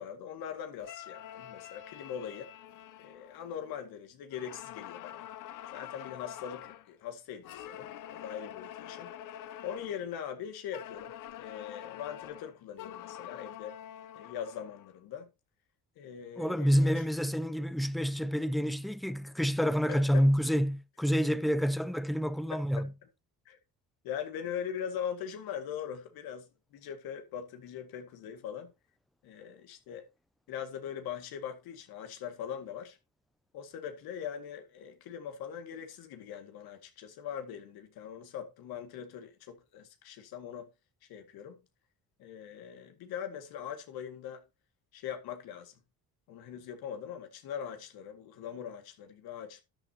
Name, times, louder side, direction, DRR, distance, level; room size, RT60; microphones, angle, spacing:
voice 1, 0.0-2.5 3.0-5.3 5.7-9.1 9.6-13.8 14.1-15.3 16.0-17.0 19.9-20.3 22.5-22.9 23.5-23.6 24.0-26.5 26.7-28.7 29.2-30.0 30.5-33.0 33.5-40.7 41.1-41.6 42.2-44.4 44.9-45.7 46.3-49.6, left 8 dB, 85° left, 2.1 m, -41 dB
sound 1, 0.8-3.9 4.3-6.9 7.4-10.1 10.7-14.9, left 11 dB, 60° left, 0.8 m, -46 dB
voice 2, 16.4-22.9, equal, ahead, 0.5 m, -28 dB
12.5 x 9.4 x 2.9 m
cardioid pair, 130°, 36 cm